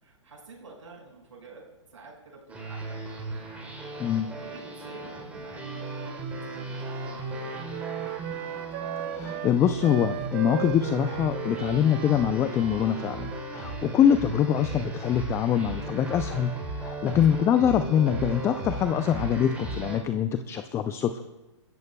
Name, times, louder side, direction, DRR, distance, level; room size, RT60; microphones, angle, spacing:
voice 1, 0.0-3.3 4.2-7.7 17.3-17.4, right 3 dB, 85° right, -2 dB, 5.9 m, -49 dB
sound 1, 2.5-20.0, right 2 dB, 10° right, 3.1 m, -36 dB
Wind instrument woodwind instrument, 5.6-13.9, right 14 dB, 40° right, 0.7 m, -38 dB
voice 2, 9.1-16.5 16.8-21.2, left 9 dB, 15° left, 10 dB, 0.4 m, -24 dB
23.5 x 14.0 x 2.2 m, 1.1 s
hypercardioid pair, 135°, 16 cm